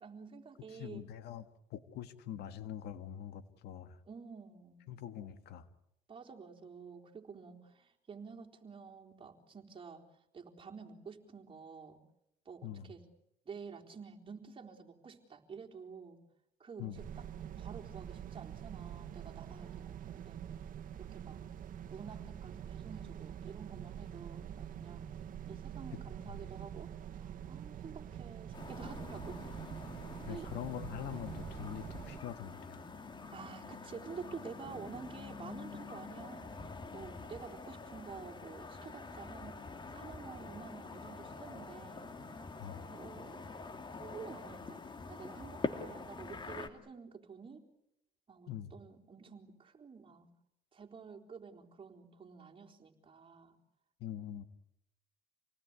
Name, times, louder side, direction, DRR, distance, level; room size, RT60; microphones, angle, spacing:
voice 1, 0.0-1.1 4.1-4.9 6.1-10.1 10.3-12.0 12.5-13.0 13.5-16.2 16.6-17.3 17.6-20.4 20.9-21.4 21.9-25.0 25.5-29.5 30.3-30.5 33.3-36.6 36.9-42.1 42.9-43.5 44.0-47.7 48.3-50.3 50.7-53.6, right 5 dB, 30° right, 1 dB, 4.0 m, -50 dB
voice 2, 0.7-1.4 1.7-4.0 4.9-5.7 12.6-12.9 16.8-17.0 30.3-32.9 42.6-42.9 48.5-48.7 54.0-54.4, left 10 dB, 80° left, 10 dB, 1.8 m, -44 dB
sound 1, 16.9-32.2, right 9 dB, 55° right, 1.8 m, -46 dB
sound 2, 28.5-46.7, left 4 dB, 25° left, 2.4 m, -46 dB
28.0 x 19.0 x 9.7 m, 0.82 s
cardioid pair, 110°, 17 cm